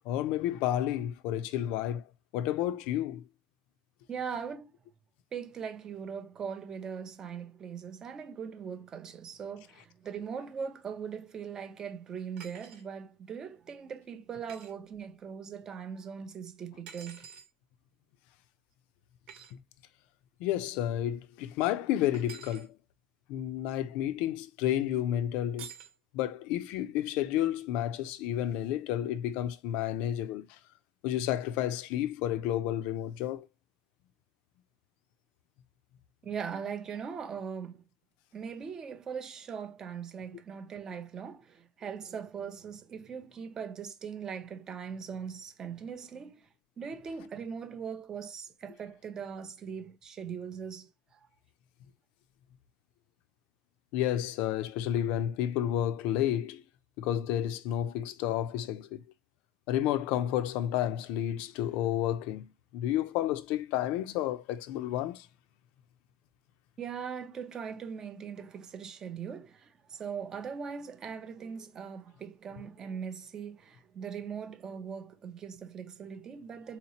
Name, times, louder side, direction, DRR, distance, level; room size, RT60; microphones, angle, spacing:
voice 1, 0.1-2.0 2.3-3.2 19.5-19.6 20.4-22.7 23.3-25.7 26.1-30.6 31.0-33.5 53.9-56.6 57.0-59.0 59.7-65.3, left 12 dB, 65° left, 0.4 m, -31 dB
voice 2, 4.1-4.7 5.3-17.3 36.2-37.8 38.3-46.5 46.8-51.3 66.8-76.8, right 7 dB, 25° right, 0.4 m, -40 dB
sound 1, 12.4-12.9 14.5-14.7 16.9-17.5 19.3-19.5 22.1-22.7 25.6-25.9, right 7 dB, 60° right, 0.9 m, -48 dB
3.8 x 2.8 x 2.8 m
cardioid pair, 150°, 2 cm